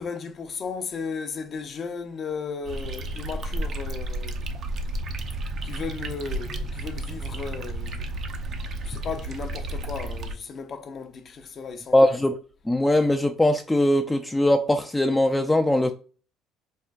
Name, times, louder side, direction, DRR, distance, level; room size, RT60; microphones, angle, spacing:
voice 1, 0.0-4.4 5.6-8.0 8.8-12.1, left 5 dB, 45° left, 0.6 m, -35 dB
sound 1, 2.6-10.3, right 1 dB, 50° right, 0.5 m, -32 dB
voice 2, 11.9-12.3 12.7-15.9, left 1 dB, 10° left, 0.4 m, -21 dB
4.3 x 2.4 x 2.3 m
supercardioid pair, 85°, 0 cm